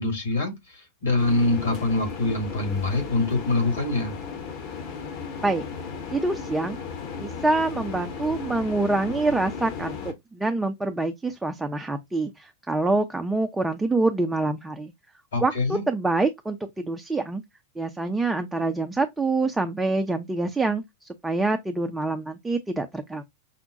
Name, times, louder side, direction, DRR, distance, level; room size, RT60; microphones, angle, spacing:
voice 1, 0.0-4.2 15.3-15.8, left 2 dB, 65° left, 2.0 m, -25 dB
sound 1, 1.2-10.1, left 6 dB, 45° left, 1.0 m, -35 dB
voice 2, 6.1-6.8 7.2-14.9 15.4-17.4 17.8-23.2, right 2 dB, 10° right, 0.5 m, -26 dB
5.6 x 2.1 x 2.7 m
figure-of-eight pair, 90°, 0 cm